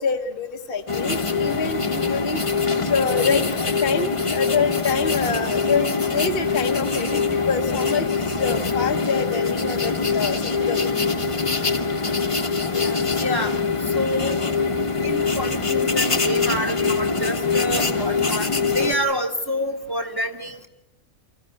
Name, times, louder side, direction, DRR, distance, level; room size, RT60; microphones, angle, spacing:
voice 1, 0.0-2.4 2.8-10.9 12.7-13.0, left 5 dB, 50° left, 3 dB, 1.2 m, -26 dB
sound 1, 0.9-18.9, left 4 dB, 25° left, 1.1 m, -23 dB
voice 2, 13.2-13.5 13.9-14.4 15.0-20.7, equal, 20° right, 2 dB, 1.2 m, -27 dB
24.5 x 14.5 x 9.8 m, 0.93 s
omnidirectional pair, 1.4 m